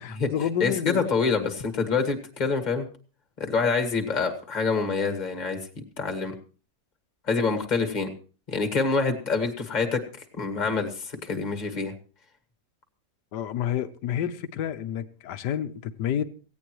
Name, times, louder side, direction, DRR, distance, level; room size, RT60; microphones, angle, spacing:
voice 1, 0.0-1.1 13.3-16.2, left 9 dB, 75° left, 1.4 m, -29 dB
voice 2, 0.6-2.9 3.4-6.3 7.3-8.1 8.5-10.0 10.4-11.9, left 4 dB, 25° left, 1.7 m, -26 dB
17.0 x 16.0 x 3.1 m
omnidirectional pair, 1.8 m